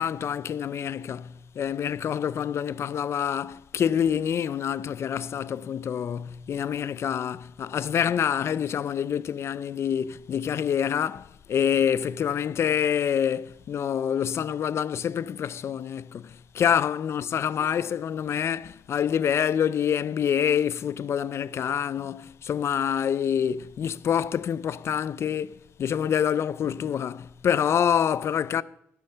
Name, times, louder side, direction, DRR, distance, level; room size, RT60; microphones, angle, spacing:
voice 1, 0.0-28.6, left 8 dB, 60° left, 0.4 m, -26 dB
14.5 x 6.6 x 6.7 m
wide cardioid pair, 145°, 5 cm